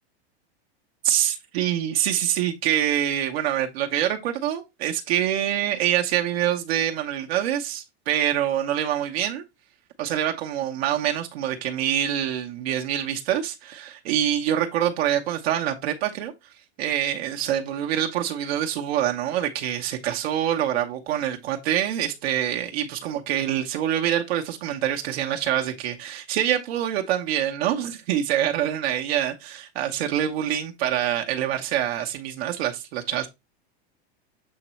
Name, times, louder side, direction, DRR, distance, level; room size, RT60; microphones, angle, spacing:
voice 1, 1.0-9.4 10.0-16.3 16.8-33.3, right 11 dB, 70° right, 1.1 m, -25 dB
7.6 x 3.0 x 4.3 m
supercardioid pair, 135°, 33 cm